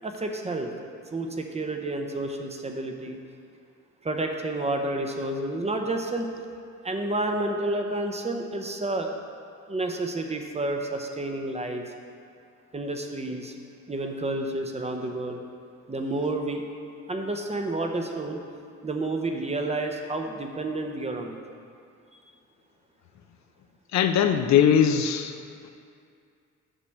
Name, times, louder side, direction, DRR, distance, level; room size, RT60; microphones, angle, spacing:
voice 1, 0.0-0.7 1.1-3.2 4.0-6.3 6.8-9.2 9.7-11.8 12.7-13.5 13.9-15.4 15.9-16.6 17.1-18.4 18.8-21.4, right 2 dB, 20° right, 3 dB, 0.7 m, -30 dB
voice 2, 23.9-25.3, left 8 dB, 65° left, 7 dB, 0.5 m, -20 dB
8.8 x 3.3 x 6.4 m, 2.3 s
cardioid pair, 90°, 30 cm